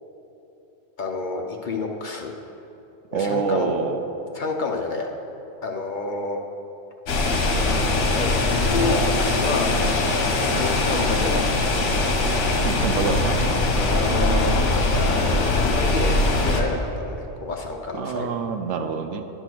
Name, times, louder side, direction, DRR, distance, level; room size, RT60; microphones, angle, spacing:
voice 1, 1.0-2.4 3.1-3.7 4.3-5.1 5.6-6.4 8.1-9.7 10.4-11.8 13.7-18.3, left 3 dB, 50° left, 2 dB, 0.7 m, -29 dB
voice 2, 3.1-4.0 12.6-13.4 17.9-19.2, right 5 dB, 80° right, 7 dB, 1.0 m, -26 dB
sound 1, 7.1-16.6, left 2 dB, 85° left, 1.3 m, -21 dB
11.0 x 4.6 x 6.0 m, 2.9 s
omnidirectional pair, 1.3 m